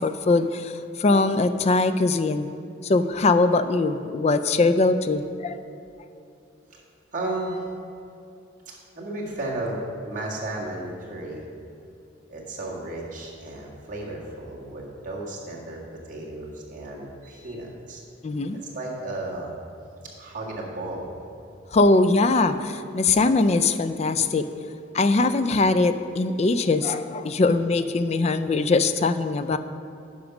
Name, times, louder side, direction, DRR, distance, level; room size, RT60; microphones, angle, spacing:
voice 1, 0.0-2.5 2.8-5.6 18.2-18.6 21.7-24.5 24.9-29.6, left 3 dB, 35° left, 11 dB, 0.3 m, -21 dB
voice 2, 7.1-7.7 8.7-11.4 12.3-15.8 16.1-18.0 18.7-19.5 20.2-21.1 27.3-27.4, right 2 dB, 40° right, -4 dB, 1.8 m, -34 dB
10.0 x 5.2 x 5.9 m, 2.6 s
head